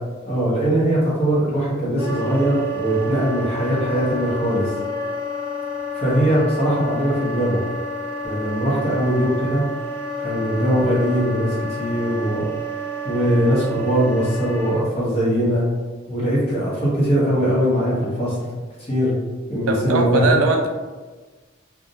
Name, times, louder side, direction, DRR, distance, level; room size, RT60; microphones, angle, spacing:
voice 1, 0.2-4.7 5.9-7.6 8.2-9.6 10.2-12.4 13.0-15.6 16.1-18.5 18.9-19.1 19.5-20.4, equal, 30° left, -8 dB, 0.8 m, -21 dB
Wind instrument woodwind instrument, 2.0-14.8, equal, 25° right, 0.7 m, -29 dB
voice 2, 19.7-20.7, right 3 dB, 85° right, 4 dB, 0.3 m, -20 dB
2.4 x 2.0 x 2.6 m, 1.3 s
head